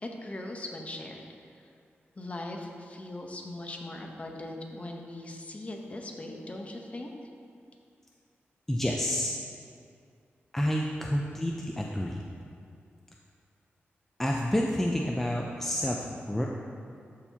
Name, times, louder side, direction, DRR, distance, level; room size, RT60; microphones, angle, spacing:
voice 1, 0.0-1.2 1.6-1.7 2.2-7.1, left 1 dB, 30° left, 1 dB, 0.8 m, -40 dB
voice 2, 8.7-9.3 10.5-12.2 14.2-16.5, equal, 5° left, -1 dB, 0.4 m, -29 dB
12.5 x 4.5 x 2.8 m, 2.3 s
wide cardioid pair, 100°, 4 cm